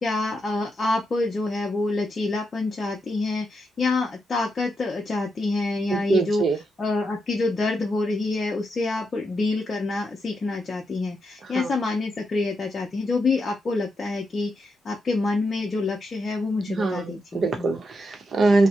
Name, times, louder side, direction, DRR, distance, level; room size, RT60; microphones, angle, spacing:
voice 1, 0.0-6.5 6.8-17.7, left 3 dB, 35° left, 0.6 m, -27 dB
voice 2, 5.9-6.6 11.5-11.7 16.7-18.7, right 3 dB, 50° right, 0.7 m, -23 dB
2.3 x 2.0 x 2.8 m
cardioid pair, 90°, 0 cm